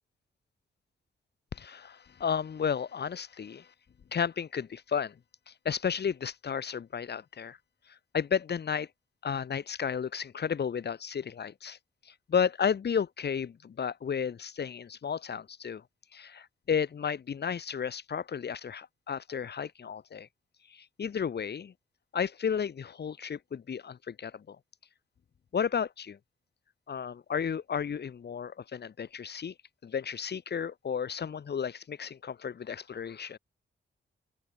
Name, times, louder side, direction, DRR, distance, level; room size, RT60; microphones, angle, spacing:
voice 1, 1.5-3.7 4.1-5.1 5.6-7.6 8.1-8.9 9.2-11.8 12.3-15.8 16.1-20.3 20.7-21.7 22.1-24.6 25.5-26.2 26.9-29.5 29.8-33.4, left 7 dB, 55° left, 2.2 m, -33 dB
open air
cardioid pair, 90°, 20 cm